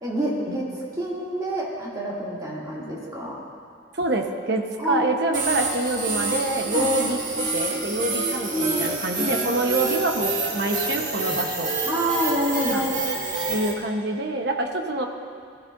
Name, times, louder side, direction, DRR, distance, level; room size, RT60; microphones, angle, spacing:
voice 1, 0.0-3.4 4.8-5.1 6.7-7.1 8.5-9.7 11.8-12.9, equal, 20° right, -6 dB, 2.6 m, -28 dB
voice 2, 3.9-11.7 12.7-12.9 13.5-15.1, right 2 dB, 65° right, 3 dB, 1.1 m, -26 dB
sound 1, 5.3-13.7, right 3 dB, 45° right, 1.9 m, -27 dB
19.5 x 13.5 x 2.6 m, 2.3 s
head